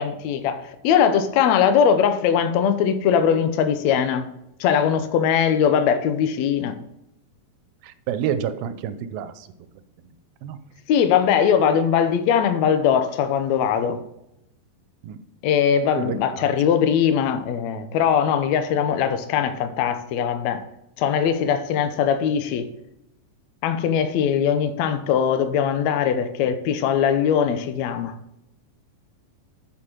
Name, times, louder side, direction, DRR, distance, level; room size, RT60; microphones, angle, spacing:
voice 1, 0.0-4.3 4.6-6.8 10.9-14.0 15.4-20.6 21.0-22.7 23.6-28.1, left 8 dB, 90° left, 1.6 m, -21 dB
voice 2, 7.8-9.5 10.4-10.6 15.0-15.2 16.0-16.5, right 9 dB, 85° right, 2.4 m, -29 dB
7.6 x 6.4 x 4.4 m
omnidirectional pair, 4.1 m